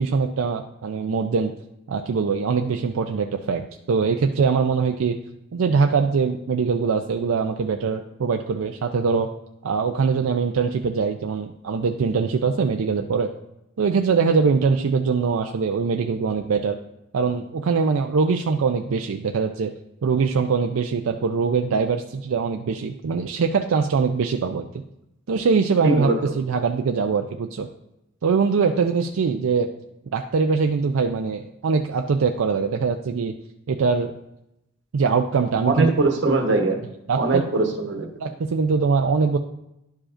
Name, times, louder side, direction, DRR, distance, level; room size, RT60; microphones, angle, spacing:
voice 1, 0.0-1.5 1.9-5.2 5.5-9.3 9.6-13.3 13.8-16.8 17.1-19.7 20.0-24.7 25.3-27.7 28.2-29.7 30.1-33.3 33.7-34.1 34.9-35.9 37.1-37.5 38.2-39.4, right 5 dB, 85° right, 4 dB, 0.4 m, -22 dB
voice 2, 25.8-26.3 35.7-36.8 37.1-38.1, right 3 dB, 60° right, 3 dB, 1.0 m, -21 dB
11.5 x 4.9 x 2.5 m, 0.86 s
head